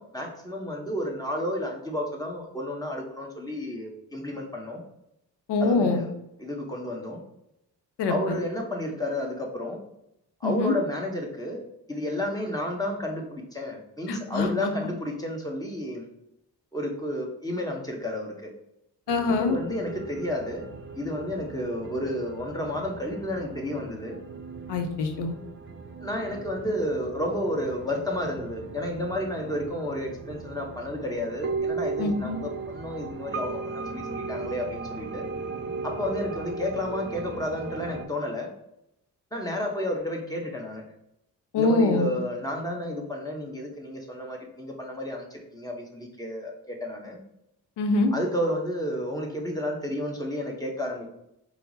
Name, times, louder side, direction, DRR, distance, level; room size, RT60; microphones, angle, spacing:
voice 1, 0.0-4.8 5.6-6.1 6.4-7.2 8.1-9.8 10.4-16.1 16.7-18.5 19.3-20.7 21.0-24.2 26.0-35.3 35.8-38.5 39.3-40.8 41.6-47.2 48.1-51.1, left 1 dB, 10° left, 0 dB, 1.1 m, -31 dB
voice 2, 5.5-6.0 8.0-8.3 10.4-10.7 14.1-14.7 19.1-19.6 24.7-25.3 32.0-32.4 41.5-42.1 47.8-48.1, left 3 dB, 80° left, 5 dB, 0.7 m, -24 dB
sound 1, 19.1-38.0, right 4 dB, 30° right, 0.6 m, -37 dB
4.4 x 2.1 x 3.9 m, 0.81 s
supercardioid pair, 50°, 41 cm